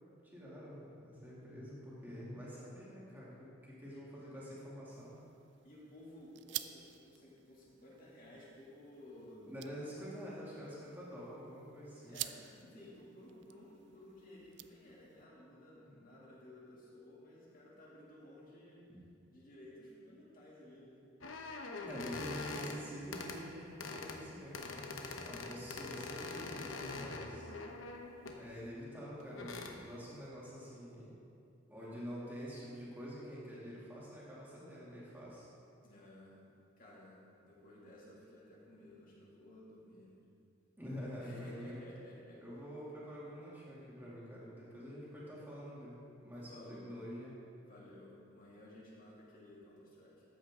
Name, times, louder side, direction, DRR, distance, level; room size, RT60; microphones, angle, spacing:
voice 1, 0.3-5.2 9.4-12.2 18.9-19.0 21.8-24.9 25.2-27.5 28.3-31.2 31.7-35.5 40.8-41.8 42.4-47.4, equal, 10° right, -8 dB, 2.5 m, -47 dB
voice 2, 3.9-4.5 5.6-9.5 10.5-10.8 12.1-18.8 19.3-21.0 25.2-25.6 35.8-36.5 36.8-40.2 41.2-42.4 46.2-47.0 47.6-50.2, left 1 dB, 40° left, -6 dB, 2.5 m, -56 dB
sound 1, 4.9-15.2, right 14 dB, 55° right, 0.4 m, -50 dB
sound 2, 21.2-22.8 23.1-23.4 23.8-24.2 24.5-28.4 29.2-29.7, left 3 dB, 75° left, 0.9 m, -43 dB
13.0 x 8.8 x 3.7 m, 2.6 s
head